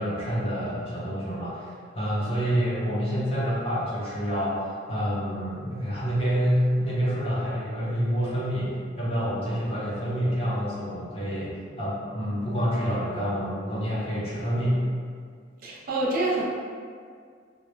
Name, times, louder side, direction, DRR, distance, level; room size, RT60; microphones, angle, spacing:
voice 1, 0.0-14.9, equal, 30° left, -8 dB, 0.5 m, -27 dB
voice 2, 15.6-16.4, right 2 dB, 45° right, -4 dB, 0.4 m, -26 dB
2.1 x 2.0 x 3.0 m, 2.1 s
head